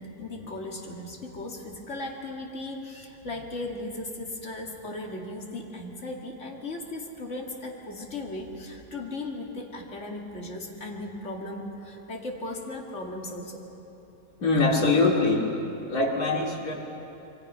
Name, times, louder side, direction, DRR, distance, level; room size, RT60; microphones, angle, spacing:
voice 1, 0.0-13.6, left 2 dB, 45° left, -1 dB, 2.6 m, -37 dB
voice 2, 14.4-15.5 15.9-16.7, left 3 dB, 65° left, 0 dB, 3.0 m, -23 dB
27.0 x 23.5 x 5.7 m, 2.8 s
omnidirectional pair, 1.7 m